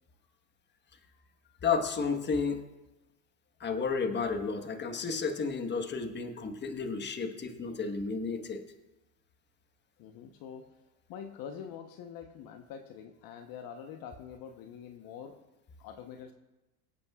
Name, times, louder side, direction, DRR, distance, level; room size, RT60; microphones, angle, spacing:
voice 1, 1.6-2.6 3.6-8.6, left 5 dB, 25° left, 6 dB, 1.3 m, -32 dB
voice 2, 10.0-10.7 11.1-15.4 15.8-16.3, left 7 dB, 50° left, 5 dB, 1.1 m, -45 dB
24.0 x 8.5 x 2.4 m, 1.0 s
supercardioid pair, 110°, 46 cm